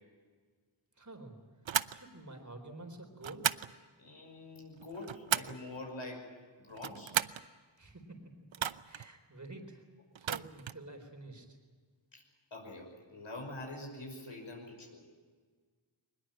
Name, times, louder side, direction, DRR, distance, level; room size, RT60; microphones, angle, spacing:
voice 1, 1.0-1.4 1.9-3.5 7.8-9.8 10.2-11.5, right 2 dB, 40° right, 5 dB, 4.3 m, -49 dB
sound 1, 1.6-2.0 3.2-3.7 4.8-5.6 6.7-7.4 8.5-9.1 10.1-10.8, right 9 dB, 75° right, 0.7 m, -34 dB
voice 2, 4.0-6.3 6.6-7.2 12.1-12.2 12.5-15.0, left 2 dB, 75° left, 0 dB, 5.8 m, -45 dB
22.0 x 21.0 x 9.0 m, 1.5 s
wide cardioid pair, 75°, 47 cm